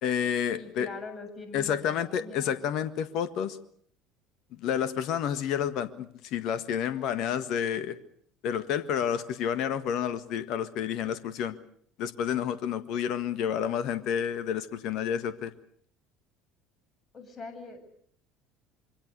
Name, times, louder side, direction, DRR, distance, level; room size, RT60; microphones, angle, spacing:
voice 1, 0.0-0.9 1.5-3.6 4.5-8.0 8.4-11.6 12.0-15.5, left 8 dB, 55° left, 13 dB, 1.6 m, -30 dB
voice 2, 0.6-2.6 17.1-17.8, left 3 dB, 30° left, 6 dB, 7.9 m, -43 dB
26.0 x 24.0 x 6.7 m, 0.62 s
figure-of-eight pair, 65°, 0 cm